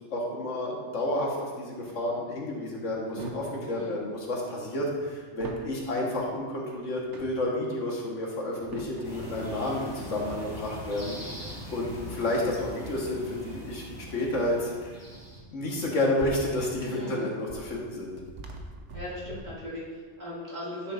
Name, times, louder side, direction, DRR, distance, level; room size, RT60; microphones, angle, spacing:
voice 1, 0.1-11.2 11.7-14.9 15.5-18.1, left 1 dB, 90° left, -2 dB, 1.7 m, -30 dB
sound 1, 1.8-2.0 2.8-3.7 3.9-5.8 6.1-6.4 6.8-7.5 8.3-9.3 11.6-12.5 14.3-14.5 15.0-19.7, right 2 dB, 75° right, 1.1 m, -44 dB
sound 2, 9.0-15.4, equal, 20° left, 2.1 m, -41 dB
voice 2, 16.9-17.3 18.9-20.9, left 1 dB, 35° right, -8 dB, 2.5 m, -38 dB
9.6 x 7.2 x 2.5 m, 1.5 s
omnidirectional pair, 1.2 m